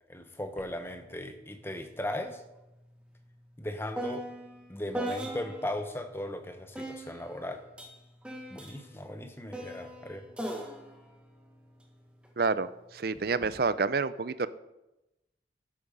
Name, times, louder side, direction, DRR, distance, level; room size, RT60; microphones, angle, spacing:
voice 1, 0.1-2.4 3.6-4.2 4.7-7.6 8.5-10.2, left 1 dB, 15° left, 7 dB, 1.0 m, -37 dB
sound 1, 0.6-0.7 1.1-5.8 6.7-12.3 13.1-13.6, right 1 dB, 5° right, 1.4 m, -41 dB
voice 2, 12.4-12.7 12.9-14.5, right 4 dB, 55° right, 15 dB, 0.5 m, -28 dB
12.0 x 8.7 x 5.4 m, 0.95 s
head